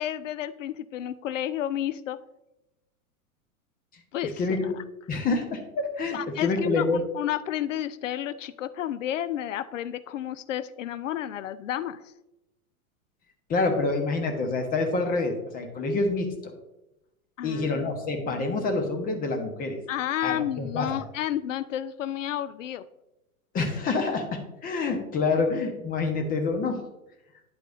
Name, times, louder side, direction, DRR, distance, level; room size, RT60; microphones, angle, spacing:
voice 1, 0.0-2.2 4.1-4.4 6.1-12.0 17.4-17.9 19.9-22.9, left 11 dB, 60° left, 15 dB, 0.6 m, -31 dB
voice 2, 4.2-4.8 5.1-7.0 13.5-16.5 17.4-19.8 20.2-21.0 23.5-26.8, left 3 dB, 20° left, 4 dB, 1.1 m, -27 dB
9.8 x 8.1 x 2.6 m, 0.93 s
figure-of-eight pair, 100°, 43 cm